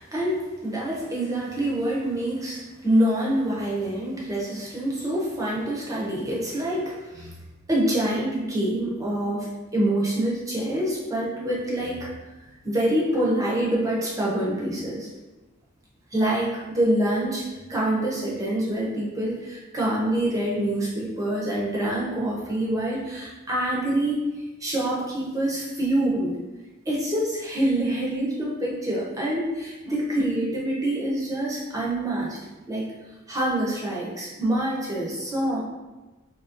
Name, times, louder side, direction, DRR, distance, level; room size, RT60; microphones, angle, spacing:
voice 1, 0.0-7.3 7.7-9.5 9.7-12.1 12.6-15.1 16.1-17.4 17.7-24.2 24.6-26.3 26.9-32.4 32.7-32.8 33.3-35.6, right 1 dB, 15° right, -5 dB, 0.9 m, -26 dB
3.8 x 3.0 x 2.9 m, 1.1 s
head